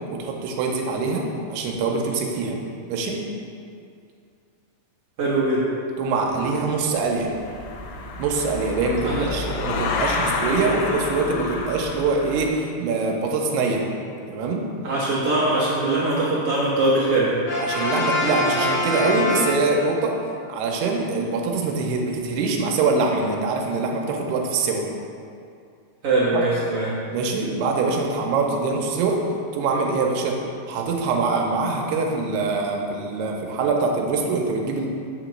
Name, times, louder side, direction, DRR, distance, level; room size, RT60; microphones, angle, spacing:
voice 1, 0.1-2.6 2.9-3.2 6.0-7.3 8.2-13.8 14.3-14.7 17.6-20.2 20.5-24.9 26.3-26.4 27.1-29.2 29.5-30.4 30.7-34.9, right 3 dB, 90° right, 0 dB, 2.7 m, -24 dB
voice 2, 5.2-5.6 9.0-9.3 14.8-17.3 26.0-26.9, right 2 dB, 70° right, -9 dB, 1.3 m, -21 dB
sound 1, 6.2-6.5 7.1-12.5, left 3 dB, 80° left, 2.3 m, -29 dB
Brass instrument, 17.5-20.1, left 2 dB, 55° left, 2.3 m, -24 dB
8.8 x 3.0 x 6.3 m, 2.4 s
omnidirectional pair, 4.7 m